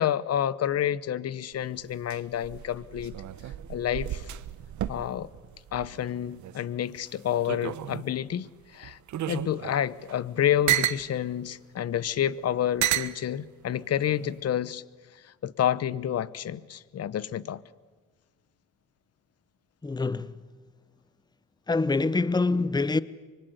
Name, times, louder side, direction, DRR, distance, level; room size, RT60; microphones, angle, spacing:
voice 1, 0.0-3.1 3.7-4.2 4.9-5.3 5.7-9.0 9.3-14.8 15.4-17.6, left 10 dB, 55° left, 0.9 m, -29 dB
sound 1, 1.5-6.6 7.0-8.2 8.8-11.1 11.9-12.0 12.8-13.2 14.0-14.4, right 12 dB, 75° right, 1.1 m, -32 dB
voice 2, 19.8-20.4 21.7-23.0, left 3 dB, 15° left, 0.8 m, -25 dB
25.0 x 23.5 x 8.0 m
cardioid pair, 90°, 30 cm